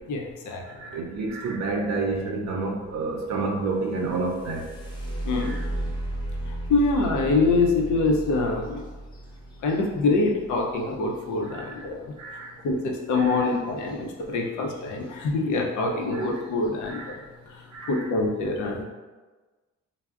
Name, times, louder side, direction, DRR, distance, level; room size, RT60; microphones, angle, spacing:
voice 1, 0.1-0.6 5.2-5.6 6.7-8.8 9.6-12.0 12.6-17.2 17.9-18.8, left 3 dB, 75° left, 0 dB, 0.6 m, -25 dB
voice 2, 0.6-4.7 5.4-5.6 11.4-11.8 12.2-12.5 13.1-13.5 16.1-16.3 16.9-17.2 17.7-18.1, right 3 dB, 65° right, 0 dB, 0.5 m, -30 dB
sound 1, 3.9-11.7 13.8-13.9 14.4-14.9 15.5-15.6 16.1-16.5, right 1 dB, 15° left, 0.8 m, -35 dB
3.4 x 2.0 x 2.3 m, 1.3 s
cardioid pair, 90°, 30 cm